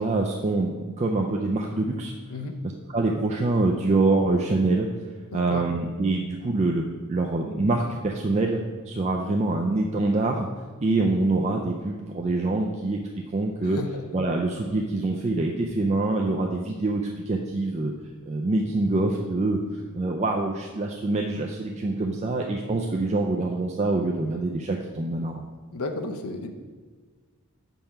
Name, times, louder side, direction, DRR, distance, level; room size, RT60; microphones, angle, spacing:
voice 1, 0.0-2.1 2.9-4.9 5.3-6.8 7.1-8.6 8.9-10.5 10.8-13.0 13.3-13.8 14.1-17.9 18.3-25.4, right 2 dB, 30° right, 1 dB, 0.4 m, -25 dB
voice 2, 5.3-5.6 13.6-14.0 25.7-26.5, left 2 dB, 75° left, 6 dB, 0.7 m, -32 dB
5.4 x 4.4 x 5.7 m, 1.5 s
head